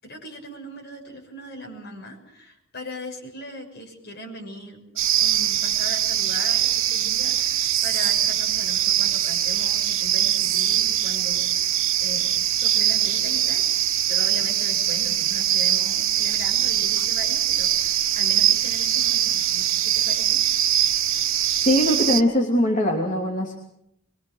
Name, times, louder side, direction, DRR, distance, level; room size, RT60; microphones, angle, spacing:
voice 1, 0.0-4.8 5.2-11.7 12.0-13.6 14.1-20.4, left 1 dB, 55° left, 1 dB, 6.9 m, -39 dB
sound 1, 5.0-22.2, right 11 dB, 80° right, 1.2 m, -22 dB
voice 2, 21.6-23.6, equal, 40° left, 0 dB, 3.1 m, -21 dB
24.5 x 23.0 x 6.5 m, 0.77 s
head